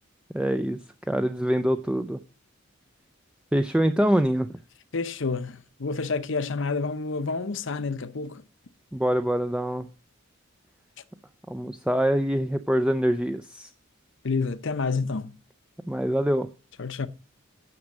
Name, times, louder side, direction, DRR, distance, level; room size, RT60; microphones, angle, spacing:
voice 1, 0.3-0.8 1.1-2.2 3.5-4.5 8.9-9.9 11.5-13.7 15.9-16.5, equal, 5° right, 0.4 m, -24 dB
voice 2, 4.9-8.4 14.2-15.3 16.8-17.1, left 4 dB, 60° left, 0.8 m, -29 dB
9.5 x 6.3 x 7.2 m
head